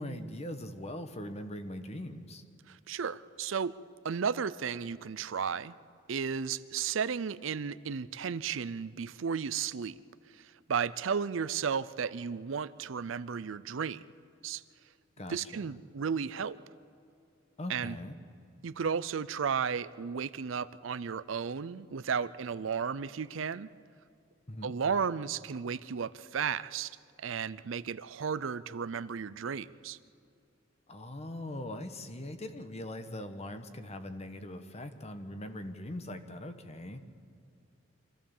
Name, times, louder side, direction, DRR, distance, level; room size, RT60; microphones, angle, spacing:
voice 1, 0.0-2.4 15.2-15.7 17.6-18.1 24.5-24.7 30.9-37.0, left 1 dB, 30° left, 8 dB, 1.2 m, -41 dB
voice 2, 2.7-3.7 4.0-5.7 6.1-10.0 10.3-14.1 14.4-14.6 15.3-16.6 17.7-18.0 18.6-23.7 24.6-30.0, right 6 dB, 70° right, 16 dB, 0.5 m, -34 dB
25.0 x 14.5 x 7.2 m, 2.5 s
head